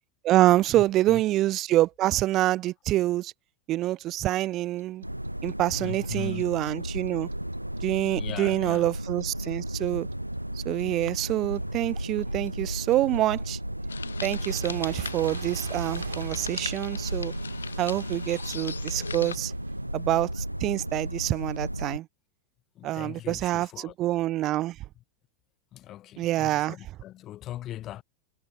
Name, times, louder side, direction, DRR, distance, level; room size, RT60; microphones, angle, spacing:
voice 1, 0.2-3.3 3.7-5.0 5.4-7.3 7.8-10.1 10.6-13.6 14.2-17.3 17.8-19.5 19.9-22.1 22.8-24.8 26.2-26.7, right 15 dB, 35° right, 0.3 m, -26 dB
voice 2, 0.7-1.2 5.8-6.4 8.1-8.9 22.7-23.9 25.7-28.0, left 13 dB, 35° left, 0.9 m, -40 dB
Clock, 4.8-7.8 8.1-11.0 11.3-20.2, right 8 dB, 65° right, 2.7 m, -42 dB
sound 1, 5.0-22.0, right 1 dB, 90° right, 0.9 m, -34 dB
sound 2, 13.9-19.4, left 5 dB, 75° left, 0.6 m, -39 dB
figure-of-eight pair, 90°, 0 cm